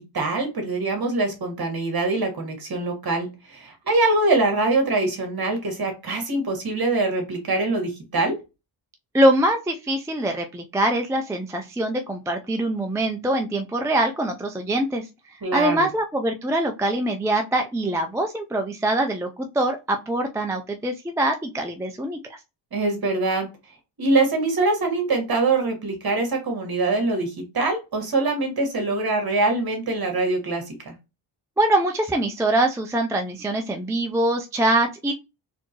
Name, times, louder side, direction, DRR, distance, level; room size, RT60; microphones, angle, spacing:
voice 1, 0.1-8.3 15.4-15.9 22.7-23.5 24.0-30.9, right 2 dB, 45° right, 3 dB, 1.6 m, -23 dB
voice 2, 9.1-15.1 15.5-22.4 31.6-35.1, right 1 dB, 5° right, 3 dB, 0.3 m, -23 dB
4.3 x 3.0 x 2.9 m, 0.26 s
wide cardioid pair, 125°, 50 cm